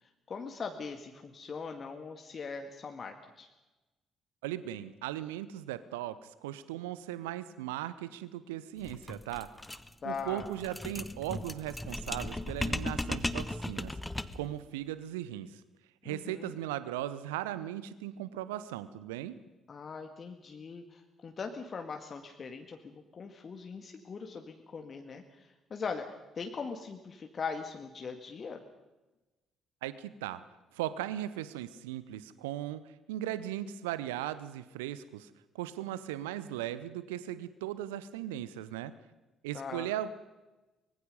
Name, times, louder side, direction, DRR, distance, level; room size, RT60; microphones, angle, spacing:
voice 1, 0.3-3.5 10.0-10.5 16.0-16.5 19.7-26.1 26.4-28.6 39.5-39.9, left 5 dB, 40° left, 4 dB, 2.0 m, -41 dB
voice 2, 4.4-9.8 10.0-13.9 14.3-15.6 16.0-19.4 29.8-30.4 30.7-32.8 33.1-35.3 35.5-38.9 39.4-40.1, right 13 dB, 70° right, 16 dB, 0.8 m, -38 dB
sound 1, 8.8-14.5, left 1 dB, 10° left, 1.1 m, -37 dB
24.5 x 21.5 x 5.4 m, 1.1 s
figure-of-eight pair, 45°, 0 cm